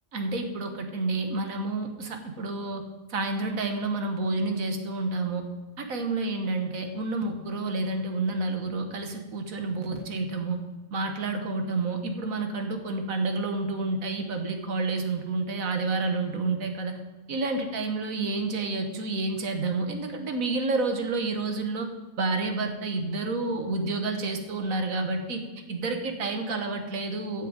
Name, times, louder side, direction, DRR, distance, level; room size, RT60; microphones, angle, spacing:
voice 1, 0.1-2.8 3.1-5.4 5.8-10.6 10.9-17.0 17.3-21.9 22.2-25.4 25.7-27.5, right 3 dB, 75° right, 5 dB, 1.7 m, -29 dB
15.5 x 6.5 x 5.1 m, 1.2 s
omnidirectional pair, 1.5 m